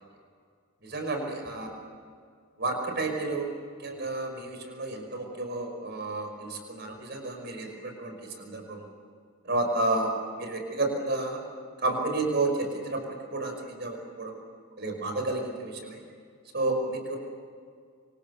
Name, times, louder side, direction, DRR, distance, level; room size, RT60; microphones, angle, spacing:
voice 1, 0.8-1.7 2.6-3.5 3.8-8.8 9.5-10.1 10.4-11.4 11.8-14.3 14.8-16.0 16.5-17.2, right 2 dB, 50° right, 3 dB, 5.5 m, -31 dB
28.0 x 25.0 x 7.1 m, 2.1 s
head